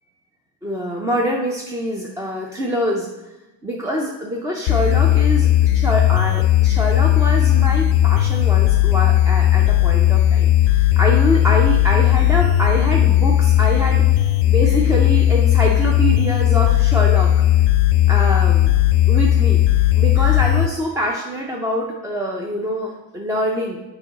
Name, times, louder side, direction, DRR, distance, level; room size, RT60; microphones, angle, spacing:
voice 1, 0.6-3.1 3.6-17.3 18.1-18.7 19.1-19.6 20.0-23.8, equal, 10° right, -1 dB, 0.4 m, -24 dB
sound 1, 4.7-20.7, left 13 dB, 70° left, 0.5 m, -16 dB
6.9 x 5.3 x 3.9 m, 1.0 s
cardioid pair, 150°, 41 cm